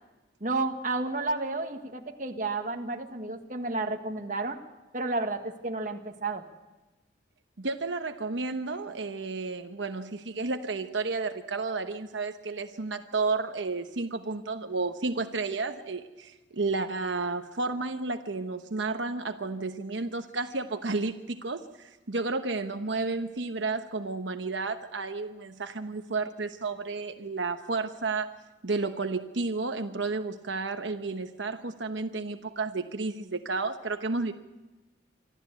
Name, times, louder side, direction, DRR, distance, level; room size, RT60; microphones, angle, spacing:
voice 1, 0.4-4.6 4.9-6.4, right 3 dB, 45° right, 4 dB, 1.6 m, -31 dB
voice 2, 7.6-28.3 28.6-34.3, right 3 dB, 80° right, 7 dB, 1.0 m, -32 dB
26.0 x 13.0 x 8.3 m, 1.1 s
head